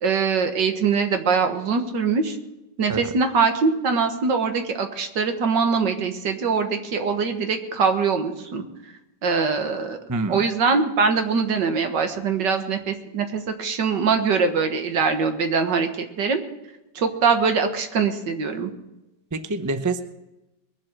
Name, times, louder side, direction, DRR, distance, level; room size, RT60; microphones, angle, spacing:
voice 1, 0.0-2.4 2.8-8.6 9.2-10.0 10.3-16.4 17.0-18.7, right 5 dB, 75° right, 6 dB, 2.1 m, -22 dB
voice 2, 10.1-10.4 19.3-20.0, right 3 dB, 25° right, 9 dB, 0.4 m, -26 dB
22.0 x 7.7 x 6.5 m, 0.96 s
omnidirectional pair, 1.9 m